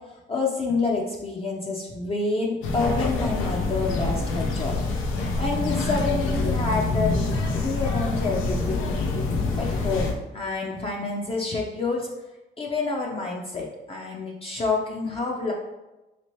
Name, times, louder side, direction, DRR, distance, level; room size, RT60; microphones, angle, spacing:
voice 1, 0.1-4.8 5.4-12.1 12.6-15.5, left 3 dB, 30° left, -2 dB, 0.5 m, -28 dB
sound 1, 2.6-10.1, left 3 dB, 90° left, 0.5 m, -26 dB
3.3 x 2.9 x 3.0 m, 1.0 s
cardioid pair, 90°, 20 cm